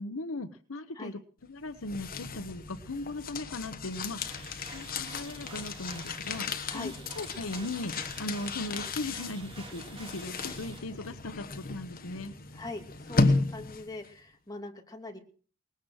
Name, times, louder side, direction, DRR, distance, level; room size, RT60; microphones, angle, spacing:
voice 1, 0.0-12.3, left 2 dB, 70° left, 9 dB, 1.0 m, -38 dB
sound 1, 1.5-14.1, left 3 dB, 45° left, 1.3 m, -34 dB
sound 2, 3.8-10.8, right 2 dB, 25° right, 4.1 m, -48 dB
voice 2, 12.5-15.2, left 2 dB, 20° left, 2 dB, 2.5 m, -42 dB
19.5 x 9.4 x 6.4 m, 0.43 s
head